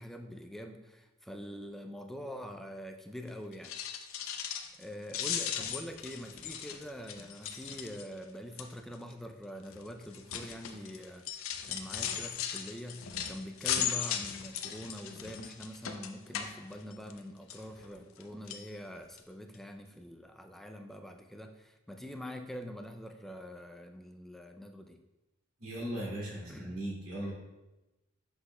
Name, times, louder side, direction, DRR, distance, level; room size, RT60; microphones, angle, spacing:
voice 1, 0.0-3.7 4.8-25.0 26.5-26.8, equal, ahead, 4 dB, 0.3 m, -44 dB
sound 1, 3.5-4.8 5.1-8.2 8.6-8.9 9.7-17.2 17.5-18.2 18.5-18.7 19.2-19.3 19.5-19.6, left 9 dB, 65° left, 0.5 m, -37 dB
voice 2, 25.6-27.3, right 1 dB, 75° right, -3 dB, 2.1 m, -38 dB
7.7 x 6.0 x 2.2 m, 1.0 s
head